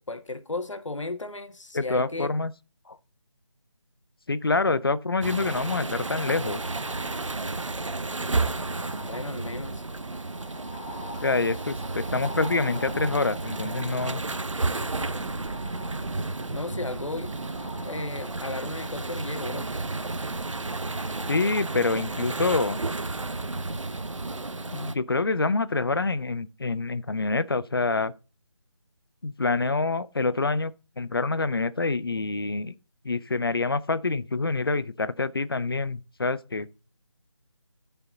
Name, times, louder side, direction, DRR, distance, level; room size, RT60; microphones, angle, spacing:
voice 1, 0.0-2.3 9.0-9.8 16.5-17.3 17.8-19.7, left 2 dB, 75° left, 1.8 m, -34 dB
voice 2, 1.7-2.5 2.9-3.0 4.3-6.6 11.2-14.2 21.3-22.8 24.7-28.1 29.2-32.7 33.0-36.7, left 3 dB, 50° left, 0.7 m, -26 dB
sound 1, 5.2-24.9, right 3 dB, 80° right, 1.1 m, -32 dB
sound 2, 6.0-18.9, left 1 dB, 15° left, 1.8 m, -45 dB
13.5 x 5.8 x 3.9 m
figure-of-eight pair, 175°, 16 cm